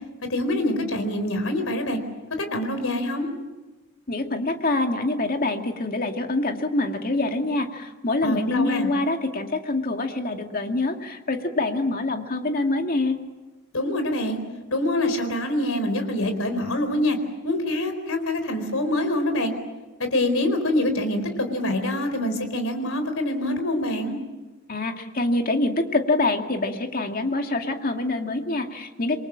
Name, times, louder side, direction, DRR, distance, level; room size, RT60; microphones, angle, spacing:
voice 1, 0.3-2.0 2.4-3.3 8.2-8.9 13.7-14.4 14.7-17.2 17.4-19.5 20.0-24.2, left 1 dB, 75° left, 7 dB, 4.3 m, -25 dB
voice 2, 4.1-13.2 24.7-29.2, left 2 dB, 45° left, 4 dB, 2.3 m, -25 dB
27.5 x 23.0 x 7.5 m, 1.2 s
head